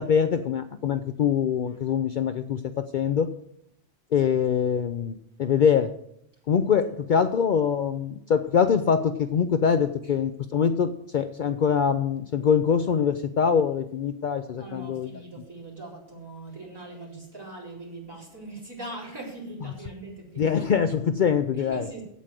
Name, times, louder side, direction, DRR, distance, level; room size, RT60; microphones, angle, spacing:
voice 1, 0.0-3.3 4.1-5.9 6.5-15.1 20.4-21.9, left 7 dB, 55° left, 0.6 m, -24 dB
voice 2, 14.5-20.5 21.5-22.0, right 2 dB, 20° right, 3.9 m, -41 dB
8.3 x 7.9 x 7.5 m
omnidirectional pair, 1.1 m